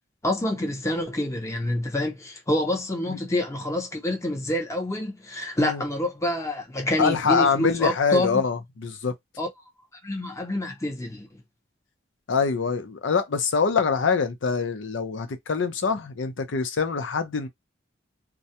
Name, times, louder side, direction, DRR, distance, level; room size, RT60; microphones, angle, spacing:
voice 1, 0.2-8.4 9.4-9.5 10.0-11.3, left 1 dB, 15° left, 0.7 m, -27 dB
voice 2, 7.0-9.1 12.3-17.5, left 5 dB, 90° left, 0.5 m, -24 dB
2.4 x 2.1 x 2.8 m
head